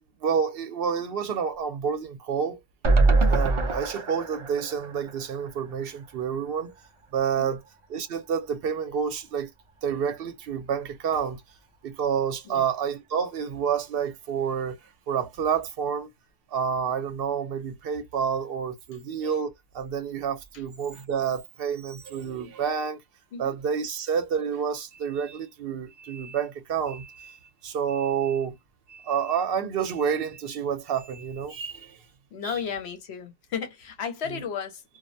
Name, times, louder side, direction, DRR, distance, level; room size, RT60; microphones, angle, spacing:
voice 1, 0.2-2.6 3.3-6.7 7.1-7.6 7.9-9.5 9.8-11.4 11.8-14.8 15.1-16.1 16.5-23.0 23.4-28.5 28.9-32.0 32.4-32.5, right 7 dB, 65° right, 0.7 m, -29 dB
sound 1, 2.8-6.1 6.4-6.5 6.8-6.9, right 3 dB, 50° right, 0.3 m, -24 dB
voice 2, 32.3-34.8, left 7 dB, 75° left, 1.0 m, -34 dB
2.3 x 2.1 x 2.5 m
omnidirectional pair, 1.1 m